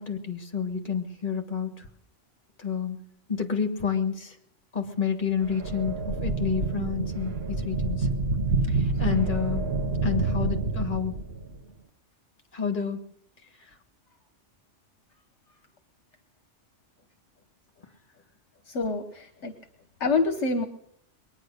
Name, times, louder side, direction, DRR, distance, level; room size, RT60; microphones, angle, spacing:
voice 1, 0.0-1.9 2.6-3.0 3.3-4.4 4.7-8.1 8.7-9.7 10.0-11.2 12.5-13.0, left 7 dB, 45° left, 5 dB, 1.8 m, -29 dB
sound 1, 5.4-11.6, right 3 dB, 60° right, 1.2 m, -28 dB
voice 2, 18.7-19.5 20.0-20.7, left 3 dB, 70° left, 7 dB, 1.3 m, -27 dB
22.0 x 9.6 x 6.4 m, 0.71 s
omnidirectional pair, 1.2 m